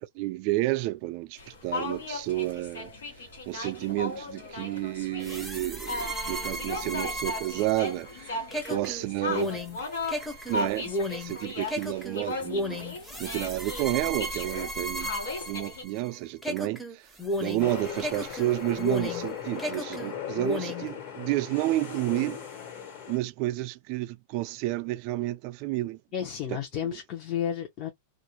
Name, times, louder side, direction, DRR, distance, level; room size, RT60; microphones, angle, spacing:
voice 1, 0.2-2.9 3.5-8.4 8.7-9.6 10.5-10.9 11.2-12.9 13.2-15.1 15.5-17.1 17.4-22.4 23.1-26.0 26.8-27.0, right 18 dB, 50° right, 0.3 m, -30 dB
sound 1, 1.4-15.8, left 3 dB, 90° left, 1.2 m, -37 dB
sound 2, 5.2-16.1 16.4-19.3 19.6-20.9, equal, ahead, 0.6 m, -34 dB
sound 3, 17.6-23.2, left 8 dB, 55° left, 1.3 m, -38 dB
voice 2, 26.1-27.9, left 9 dB, 40° left, 0.7 m, -32 dB
2.4 x 2.1 x 2.9 m
supercardioid pair, 135°, 0 cm